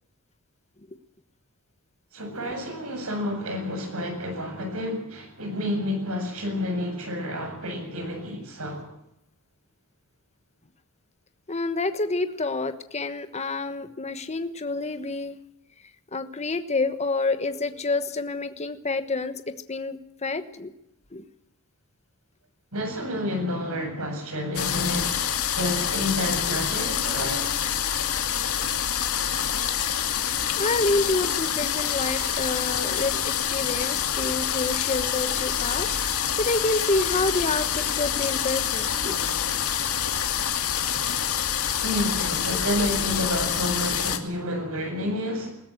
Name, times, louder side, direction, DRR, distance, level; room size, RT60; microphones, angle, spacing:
voice 1, 2.1-8.9 22.7-27.5 41.8-45.5, left 1 dB, 70° right, 7.5 m, -30 dB
voice 2, 11.5-15.4 16.1-19.4 19.7-20.7 21.1-21.2 30.6-39.2, left 3 dB, 30° left, 1.2 m, -28 dB
sound 1, 24.5-44.2, left 8 dB, 70° left, 2.2 m, -26 dB
21.0 x 16.5 x 7.9 m
head